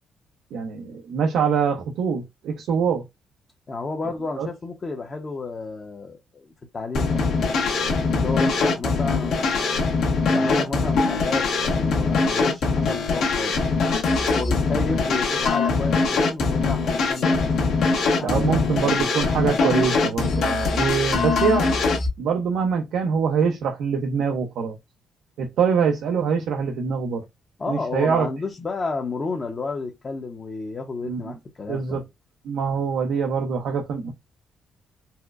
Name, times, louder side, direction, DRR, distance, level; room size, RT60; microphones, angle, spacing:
voice 1, 0.5-3.0 4.4-4.5 18.2-21.7 22.2-24.8 25.4-27.2 27.7-28.3 31.0-31.2 31.7-32.0 32.4-34.1, right 6 dB, 80° right, 0.6 m, -24 dB
voice 2, 3.7-7.3 8.1-9.9 10.3-13.6 14.3-17.5 18.2-19.0 27.6-32.0, left 3 dB, 35° left, 0.7 m, -31 dB
sound 1, 6.9-22.1, left 4 dB, 70° left, 1.2 m, -22 dB
4.2 x 2.1 x 2.4 m
cardioid pair, 90°, 0 cm